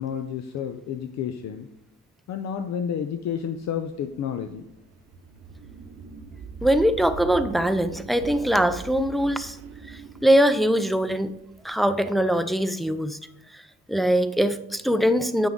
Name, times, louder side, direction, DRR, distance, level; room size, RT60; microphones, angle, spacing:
voice 1, 0.0-1.7 2.3-4.6, left 8 dB, 65° left, 8 dB, 0.6 m, -30 dB
sound 1, 3.3-12.3, right 5 dB, 50° right, 0.9 m, -42 dB
voice 2, 6.6-9.6 9.9-11.3 11.6-13.2 13.5-13.6 13.9-15.5, equal, ahead, 10 dB, 0.5 m, -22 dB
8.3 x 6.0 x 3.6 m, 0.81 s
cardioid pair, 90°, 30 cm